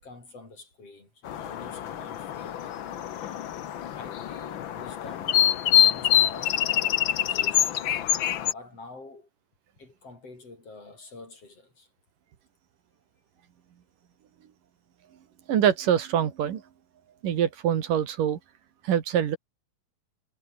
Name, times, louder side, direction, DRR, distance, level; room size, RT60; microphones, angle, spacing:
voice 1, 0.0-3.2 3.8-5.5 5.8-8.0 8.5-9.3 9.8-11.9, left 3 dB, 45° left, 7.5 m, -47 dB
sound 1, 1.2-8.5, left 10 dB, 80° left, 1.1 m, -25 dB
voice 2, 15.5-16.6 17.2-18.4 18.8-19.4, right 9 dB, 75° right, 3.6 m, -24 dB
omnidirectional pair, 3.8 m